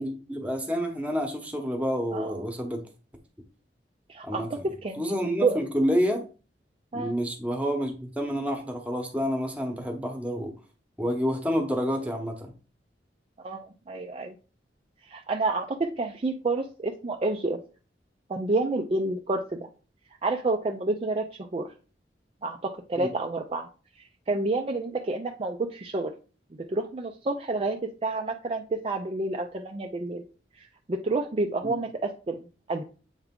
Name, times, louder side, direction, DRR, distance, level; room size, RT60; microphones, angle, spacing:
voice 1, 0.0-2.8 4.2-4.5 5.0-6.2 6.9-10.5 11.0-12.5 23.0-23.1 31.6-31.7, equal, 10° right, 3 dB, 1.0 m, -28 dB
voice 2, 2.1-2.5 4.1-4.5 4.8-5.0 5.4-5.6 6.9-7.1 13.4-14.3 15.1-17.6 18.3-19.7 20.2-21.7 22.4-23.7 24.3-26.1 26.7-30.2 30.9-32.4 32.7-32.8, right 3 dB, 30° right, 3 dB, 0.4 m, -29 dB
8.0 x 3.4 x 3.7 m, 0.36 s
head